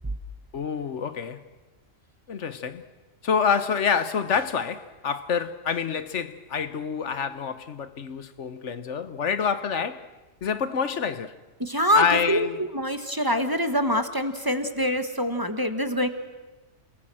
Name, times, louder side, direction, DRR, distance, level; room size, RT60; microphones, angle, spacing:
voice 1, 0.5-1.4 2.3-2.8 3.2-10.1 10.4-11.3 11.9-12.6, left 6 dB, 70° left, 1.3 m, -27 dB
voice 2, 11.6-16.1, equal, 20° right, 1.3 m, -25 dB
29.0 x 19.5 x 7.7 m
omnidirectional pair, 1.3 m